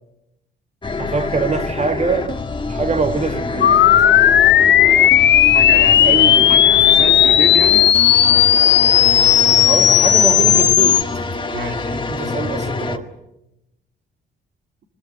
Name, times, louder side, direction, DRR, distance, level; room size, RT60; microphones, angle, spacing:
sound 1, 0.8-13.0, left 3 dB, 25° left, 1.8 m, -26 dB
voice 1, 1.0-2.4 2.7-3.8 6.0-6.6 9.6-11.1 12.1-13.1, right 4 dB, 35° right, 1.9 m, -23 dB
sound 2, 3.6-11.0, left 11 dB, 65° left, 0.9 m, -13 dB
voice 2, 5.4-6.2 6.5-7.9 11.5-12.4, right 5 dB, 60° right, 3.0 m, -29 dB
22.0 x 21.5 x 8.0 m
cardioid pair, 90°, 20 cm